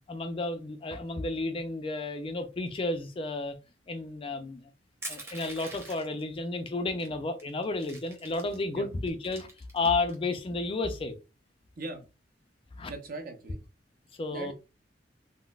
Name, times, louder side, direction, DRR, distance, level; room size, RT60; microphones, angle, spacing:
voice 1, 0.1-3.6 3.9-4.7 5.1-9.5 9.7-11.2 12.8-12.9 14.2-14.5, left 3 dB, 30° left, 0.4 m, -32 dB
Crushing, 5.0-6.2 7.0-7.1 7.4-8.6 9.1-10.1, right 2 dB, 15° right, 0.8 m, -43 dB
voice 2, 12.9-13.6 14.3-14.5, right 2 dB, 55° right, 0.7 m, -39 dB
3.7 x 2.0 x 2.3 m
head